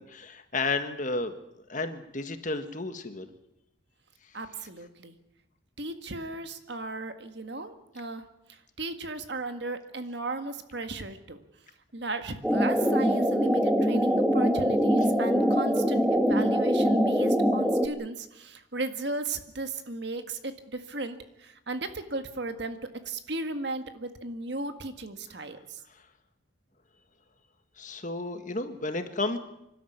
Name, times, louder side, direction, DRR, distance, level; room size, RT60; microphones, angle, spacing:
voice 1, 0.0-1.3 1.7-3.3 27.8-29.4, left 3 dB, 40° left, 8 dB, 1.6 m, -32 dB
voice 2, 4.3-5.2 5.8-8.2 8.8-11.4 11.9-22.8 23.0-25.8, right 2 dB, 55° right, 8 dB, 1.7 m, -36 dB
sound 1, 12.4-17.9, equal, 5° right, 1.5 m, -23 dB
26.5 x 12.5 x 9.5 m, 0.86 s
head